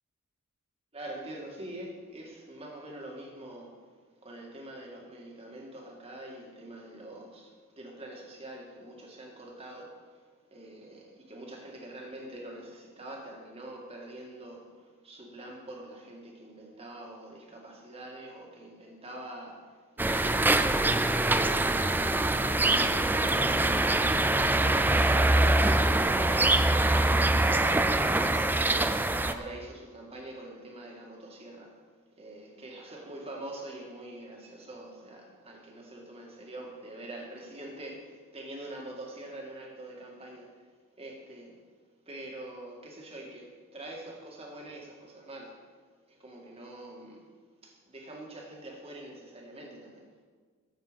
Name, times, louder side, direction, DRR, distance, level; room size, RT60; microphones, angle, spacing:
voice 1, 0.9-3.7 4.2-10.0 10.5-14.7 15.0-22.0 22.4-26.6 27.2-31.8 32.2-40.5 41.0-41.6 42.1-45.6 46.2-47.2 47.6-50.1, right 1 dB, 25° right, -1 dB, 2.1 m, -45 dB
sound 1, 20.0-29.3, right 2 dB, 10° right, 0.4 m, -24 dB
12.5 x 8.0 x 5.2 m, 1.5 s
head